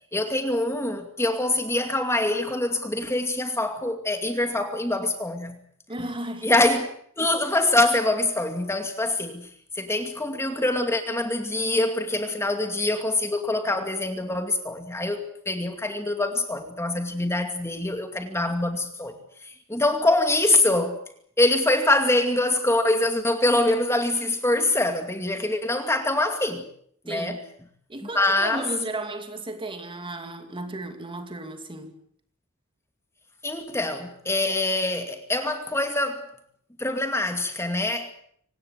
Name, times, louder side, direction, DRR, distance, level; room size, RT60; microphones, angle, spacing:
voice 1, 0.1-5.6 6.4-6.9 7.2-9.5 9.8-19.2 19.4-21.0 21.4-26.7 27.1-27.4 28.1-28.6 33.4-36.3 36.8-38.1, left 2 dB, 10° left, 2.4 m, -24 dB
voice 2, 5.9-6.5 12.7-12.8 18.5-18.6 27.1-27.4 27.9-31.9, right 2 dB, 25° right, 2.5 m, -34 dB
25.5 x 18.5 x 8.2 m
head